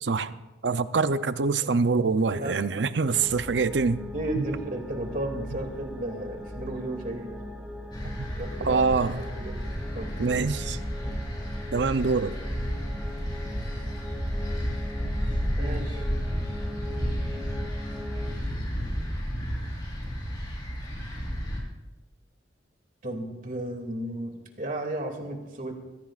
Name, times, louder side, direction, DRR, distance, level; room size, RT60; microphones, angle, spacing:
voice 1, 0.0-4.0 4.4-4.5 8.0-8.1 8.6-9.2 10.2-10.8 11.7-12.4, right 4 dB, 70° right, 0.6 m, -25 dB
sound 1, 3.1-18.3, left 1 dB, 5° right, 1.5 m, -41 dB
voice 2, 4.1-7.3 8.4-8.8 9.1-9.6 9.9-10.5 11.0-11.2 15.6-16.0 23.0-25.7, right 1 dB, 45° right, 2.5 m, -34 dB
sound 2, 7.9-21.6, equal, 25° left, 4.0 m, -32 dB
24.0 x 16.5 x 2.5 m
head